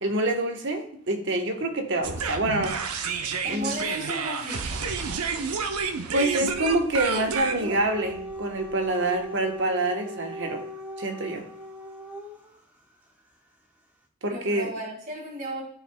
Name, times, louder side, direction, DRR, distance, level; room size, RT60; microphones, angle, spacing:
voice 1, 0.0-2.8 3.5-3.7 6.1-10.6 11.0-11.4 14.2-14.7, right 2 dB, 55° right, 4 dB, 1.1 m, -26 dB
sound 1, 2.0-9.1, right 5 dB, 85° right, 0.7 m, -30 dB
voice 2, 3.4-4.8 14.3-15.6, right 1 dB, 35° right, -5 dB, 1.8 m, -34 dB
Dog, 7.4-12.5, equal, 10° right, 0.8 m, -38 dB
12.5 x 4.9 x 2.2 m, 0.63 s
head